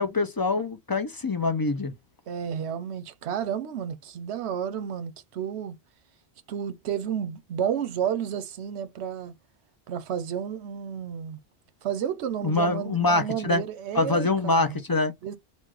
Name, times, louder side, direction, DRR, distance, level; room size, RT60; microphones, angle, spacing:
voice 1, 0.0-1.9 12.4-13.6 13.9-15.1, left 3 dB, 30° left, 0.4 m, -24 dB
voice 2, 2.3-5.8 6.5-9.3 9.9-11.4 11.8-14.8 15.2-15.4, right 8 dB, 85° right, 0.9 m, -31 dB
3.1 x 2.4 x 3.7 m
omnidirectional pair, 1.1 m